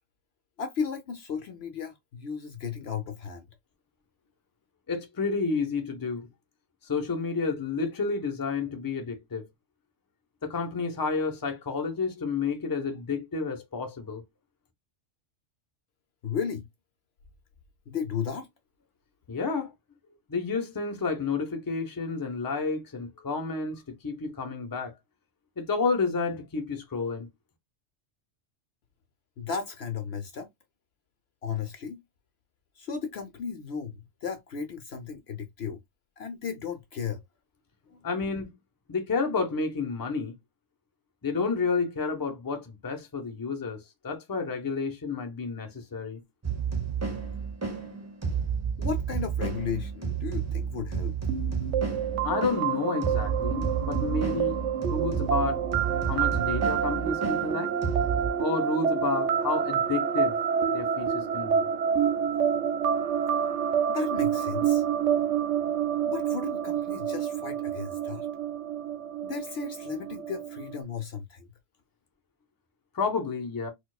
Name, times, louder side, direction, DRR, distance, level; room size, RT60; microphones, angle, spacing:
voice 1, 0.6-3.5 16.2-16.7 17.9-18.5 29.4-30.5 31.4-32.0 32.8-35.8 36.2-37.2 37.9-38.0 48.8-51.1 63.9-64.8 66.0-68.3 69.2-71.5, left 6 dB, 65° left, 0.8 m, -35 dB
voice 2, 4.9-6.3 6.8-9.5 10.4-14.2 19.3-19.7 20.3-24.9 25.6-27.3 38.0-38.5 38.9-40.4 41.2-46.2 52.2-55.6 56.0-57.7 58.4-60.4 60.7-61.7 72.9-73.7, left 4 dB, 20° left, 0.7 m, -30 dB
sound 1, 46.4-58.3, right 6 dB, 15° right, 0.9 m, -31 dB
sound 2, 51.3-70.8, right 8 dB, 70° right, 0.9 m, -28 dB
4.3 x 2.3 x 2.3 m
omnidirectional pair, 1.3 m